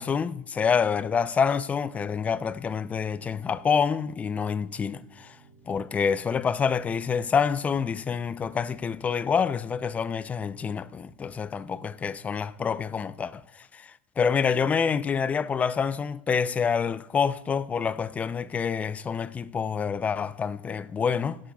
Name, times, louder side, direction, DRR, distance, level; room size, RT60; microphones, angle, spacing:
voice 1, 0.0-5.4 5.7-21.4, left 6 dB, 25° left, 0.5 m, -27 dB
sound 1, 3.0-13.0, right 3 dB, 70° right, 3.0 m, -57 dB
17.0 x 11.5 x 2.3 m
supercardioid pair, 105°, 6 cm